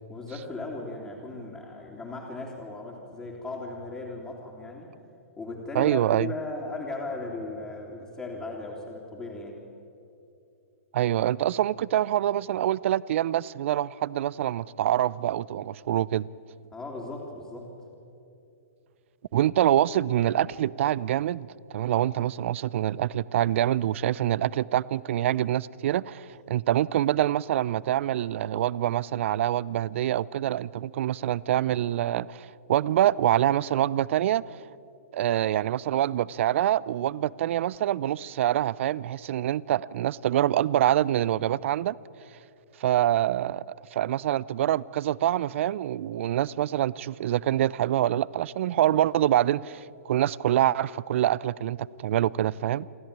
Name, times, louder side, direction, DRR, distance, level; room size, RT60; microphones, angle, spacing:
voice 1, 0.1-4.9 5.4-9.5 16.7-17.7, left 3 dB, 15° left, 3.1 m, -37 dB
voice 2, 5.7-6.3 10.9-16.3 19.3-21.5 21.7-34.4 35.1-42.0 42.8-43.6 43.9-52.9, right 12 dB, 55° right, 0.5 m, -25 dB
28.0 x 13.0 x 8.8 m
hypercardioid pair, 125°, 8 cm